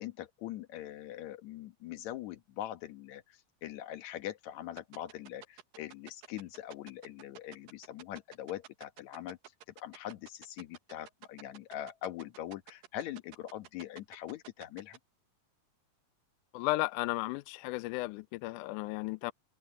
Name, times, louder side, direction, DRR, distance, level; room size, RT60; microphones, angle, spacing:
voice 1, 0.0-9.4 9.8-15.0, left 12 dB, 65° left, 2.2 m, -42 dB
sound 1, 4.8-15.0, right 11 dB, 75° right, 3.0 m, -51 dB
voice 2, 16.5-19.3, left 20 dB, 90° left, 1.7 m, -34 dB
open air
omnidirectional pair, 4.1 m